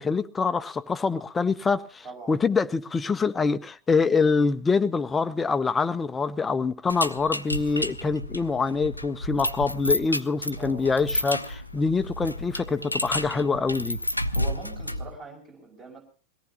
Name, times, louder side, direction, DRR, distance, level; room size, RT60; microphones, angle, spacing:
voice 1, 0.0-14.0, left 4 dB, 15° left, 0.7 m, -25 dB
voice 2, 2.0-2.4 10.6-10.9 13.3-13.7 14.3-16.0, right 4 dB, 30° right, 6.0 m, -42 dB
sound 1, 6.9-15.2, left 1 dB, 85° left, 0.6 m, -31 dB
22.5 x 17.5 x 2.9 m
figure-of-eight pair, 90°, 0 cm